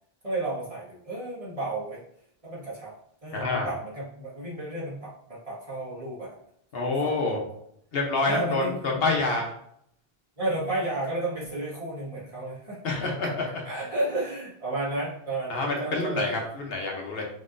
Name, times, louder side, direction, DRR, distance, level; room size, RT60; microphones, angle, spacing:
voice 1, 0.2-2.0 2.4-2.9 3.2-6.4 6.7-7.6 8.2-9.0 10.4-16.4, right 2 dB, 35° right, -7 dB, 1.7 m, -33 dB
voice 2, 3.3-3.7 6.7-7.4 7.9-9.5 12.8-13.6 15.5-17.3, left 3 dB, 70° left, 0 dB, 1.1 m, -27 dB
5.4 x 3.1 x 2.6 m, 0.69 s
omnidirectional pair, 1.0 m